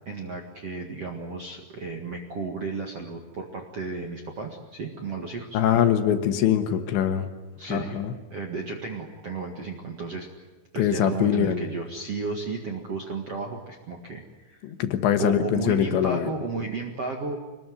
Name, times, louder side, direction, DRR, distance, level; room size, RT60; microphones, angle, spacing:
voice 1, 0.1-5.6 7.6-8.0 8.3-10.3 10.7-14.7 15.2-17.4, right 4 dB, 55° right, 2 dB, 1.8 m, -33 dB
voice 2, 5.5-7.3 7.7-8.1 10.8-11.6 14.6-16.4, left 9 dB, 75° left, 8 dB, 3.4 m, -23 dB
25.5 x 20.5 x 9.5 m, 1.2 s
omnidirectional pair, 5.6 m